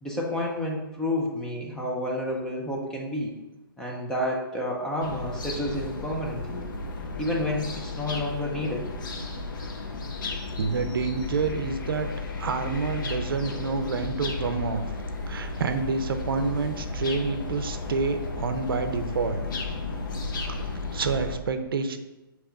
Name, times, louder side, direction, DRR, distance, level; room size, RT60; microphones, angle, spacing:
voice 1, 0.0-3.3 3.8-6.6 7.2-8.8, left 1 dB, 5° left, -3 dB, 0.4 m, -30 dB
sound 1, 5.0-21.4, left 3 dB, 60° left, 0.7 m, -34 dB
voice 2, 10.6-12.1 12.4-14.8 15.3-19.4 20.5-22.0, right 5 dB, 70° right, 7 dB, 0.5 m, -28 dB
5.2 x 2.9 x 3.4 m, 1.0 s
hypercardioid pair, 150°, 12 cm